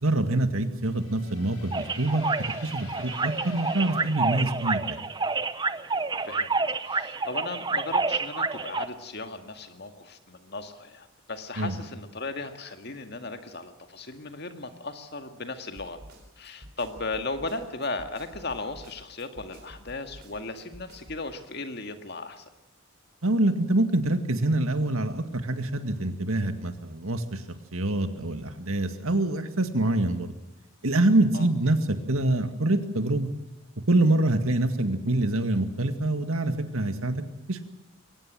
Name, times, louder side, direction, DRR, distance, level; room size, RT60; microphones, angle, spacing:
voice 1, 0.0-2.2 2.6-5.0 11.6-11.7 23.2-27.4 27.7-30.3 30.8-33.3 33.9-37.2 37.5-37.7, right 2 dB, 75° right, 8 dB, 2.1 m, -25 dB
sound 1, 0.8-5.5, left 4 dB, 70° left, 4.5 m, -48 dB
sound 2, 1.7-8.9, right 4 dB, 20° right, 0.7 m, -29 dB
voice 2, 6.2-6.5 6.9-16.0 16.4-22.4 30.0-30.2 31.3-31.5, left 3 dB, 50° left, 7 dB, 2.0 m, -36 dB
Snare drum, 15.8-21.3, right 1 dB, 45° right, 4.3 m, -49 dB
22.5 x 19.0 x 7.6 m, 0.94 s
head